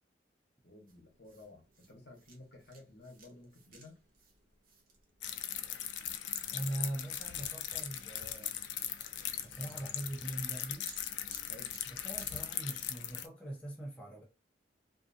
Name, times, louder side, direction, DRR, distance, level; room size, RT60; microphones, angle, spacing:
voice 1, 0.6-4.0 11.4-11.7, left 2 dB, 65° left, 0.9 m, -54 dB
sound 1, 0.9-13.0, right 3 dB, 50° right, 0.7 m, -62 dB
sound 2, 5.2-13.3, left 10 dB, 90° left, 0.4 m, -39 dB
sound 3, 6.1-12.2, right 1 dB, 25° right, 1.1 m, -63 dB
voice 2, 6.5-8.5 9.4-10.9 11.9-14.2, right 1 dB, 5° left, 0.6 m, -41 dB
2.5 x 2.3 x 2.5 m
head